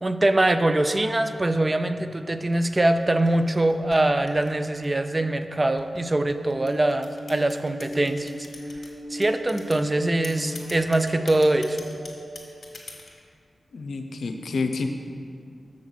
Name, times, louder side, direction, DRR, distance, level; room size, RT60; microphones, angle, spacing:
voice 1, 0.0-8.3 9.1-11.8, right 1 dB, 30° right, 9 dB, 0.4 m, -23 dB
sound 1, 2.6-5.1 5.8-8.9 9.2-9.8 10.2-13.2, left 3 dB, 55° left, 1.4 m, -43 dB
sound 2, 6.2-12.4, equal, 65° right, 1.4 m, -38 dB
voice 2, 13.7-14.9, left 4 dB, 85° left, 5 dB, 0.5 m, -28 dB
7.2 x 3.9 x 6.2 m, 2.2 s
cardioid pair, 60°, 0 cm